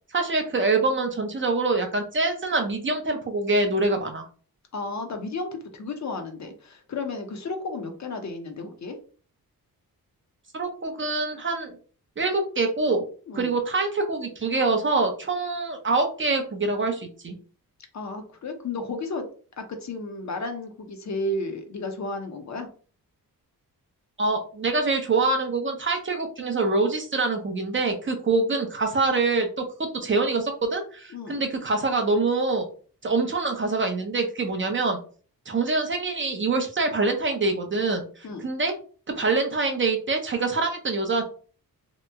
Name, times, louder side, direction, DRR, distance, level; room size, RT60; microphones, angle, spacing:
voice 1, 0.1-4.3 10.5-11.8 12.2-13.0 13.3-17.4 24.2-32.7 33.0-35.0 35.5-38.7 39.2-41.2, right 3 dB, 35° right, 4 dB, 0.5 m, -25 dB
voice 2, 4.7-9.0 13.3-13.5 17.9-19.3 19.6-22.7 31.1-31.4 38.2-38.5, left 2 dB, 50° left, 5 dB, 0.6 m, -33 dB
2.9 x 2.0 x 3.4 m, 0.40 s
wide cardioid pair, 145°, 37 cm